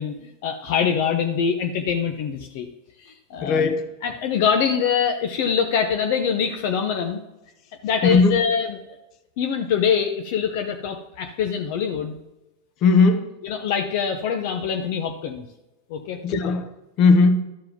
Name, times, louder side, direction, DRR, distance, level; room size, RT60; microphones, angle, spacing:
voice 1, 0.0-2.7 3.0-3.7 4.0-7.2 7.8-8.8 9.4-12.1 13.4-15.5 15.9-16.2, left 7 dB, 60° left, 5 dB, 0.9 m, -24 dB
voice 2, 3.4-3.9 8.0-8.4 12.8-13.3 16.2-16.7 17.0-17.4, left 4 dB, 45° left, 8 dB, 1.2 m, -17 dB
12.0 x 4.8 x 5.9 m, 0.99 s
supercardioid pair, 130°, 0 cm